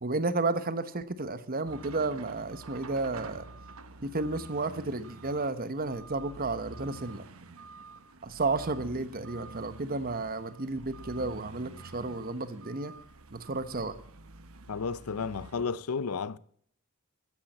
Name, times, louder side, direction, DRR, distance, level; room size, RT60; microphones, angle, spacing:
voice 1, 0.0-3.5 4.0-7.2 8.2-12.9 13.3-13.9, right 3 dB, 40° right, 1.1 m, -32 dB
sound 1, 1.6-15.6, right 3 dB, 70° right, 1.1 m, -48 dB
voice 2, 14.7-16.4, left 5 dB, 85° left, 0.6 m, -32 dB
14.5 x 10.5 x 7.3 m
head